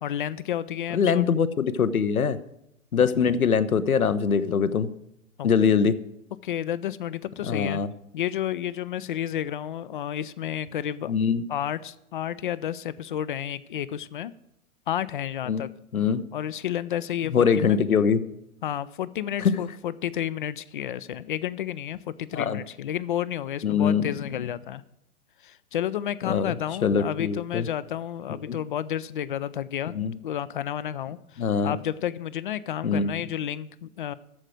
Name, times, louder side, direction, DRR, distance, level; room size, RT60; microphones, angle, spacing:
voice 1, 0.0-1.2 5.4-5.5 6.4-7.8 8.1-11.1 11.5-14.3 14.9-15.7 16.3-17.8 18.6-24.8 25.4-29.9 30.2-34.1, left 10 dB, 40° left, 18 dB, 0.4 m, -31 dB
voice 2, 0.9-2.4 2.9-4.9 5.4-6.0 7.5-7.9 11.1-11.4 15.5-15.7 15.9-16.2 17.3-18.2 19.4-19.6 22.3-22.6 23.6-24.0 26.2-27.7 28.5-28.6 29.9-30.1 31.4-31.8 32.8-33.2, left 6 dB, 75° left, 13 dB, 0.9 m, -23 dB
13.5 x 4.9 x 7.7 m, 0.81 s
figure-of-eight pair, 110°, 43 cm